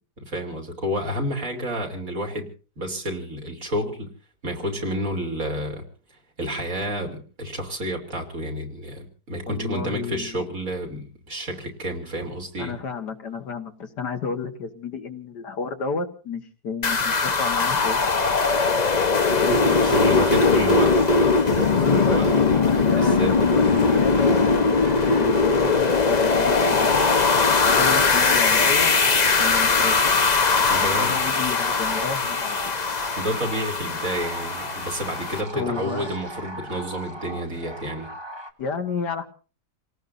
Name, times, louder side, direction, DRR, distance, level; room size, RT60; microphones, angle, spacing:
voice 1, 0.3-2.5 2.8-4.1 4.4-5.8 6.4-12.8 19.6-22.3 22.7-23.3 23.6-23.9 30.7-31.3 33.2-38.1, equal, 50° right, 2 dB, 3.5 m, -29 dB
voice 2, 9.5-10.4 12.6-18.1 19.4-20.7 21.7-24.8 25.1-27.1 27.6-29.0 29.4-30.1 30.7-32.7 35.5-36.1 38.6-39.3, left 5 dB, 80° left, 6 dB, 2.1 m, -31 dB
noise sweep, 16.8-35.4, left 4 dB, 30° left, 0.8 m, -20 dB
sound 1, 19.4-38.5, right 1 dB, 20° right, 1.1 m, -38 dB
28.5 x 18.5 x 2.6 m, 0.36 s
omnidirectional pair, 1.8 m